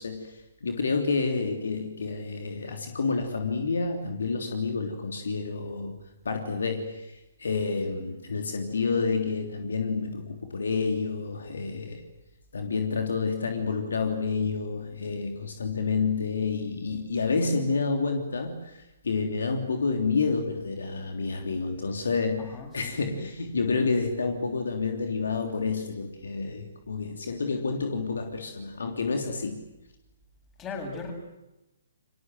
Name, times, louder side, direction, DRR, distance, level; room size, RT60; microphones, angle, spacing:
voice 1, 0.0-6.0 6.2-12.0 12.5-29.6, left 4 dB, 65° left, 5 dB, 3.3 m, -29 dB
voice 2, 22.4-23.0 30.6-31.1, left 4 dB, 20° left, 3 dB, 7.5 m, -38 dB
29.5 x 24.5 x 7.9 m, 0.97 s
figure-of-eight pair, 130°, 0 cm